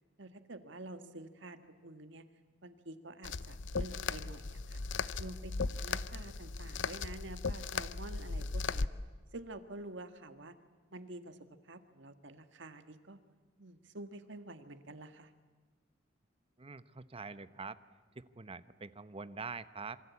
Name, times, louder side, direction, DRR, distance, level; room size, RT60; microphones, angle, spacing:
voice 1, 0.2-2.2 2.6-4.8 5.2-8.9 9.3-10.6 10.9-11.4 11.6-13.2 13.6-15.3, right 2 dB, 70° right, 9 dB, 1.6 m, -48 dB
sound 1, 3.2-8.9, left 4 dB, 70° left, 0.7 m, -37 dB
voice 2, 16.6-17.8 18.2-20.0, right 4 dB, 30° right, 13 dB, 0.9 m, -45 dB
27.0 x 24.5 x 8.4 m, 1.4 s
head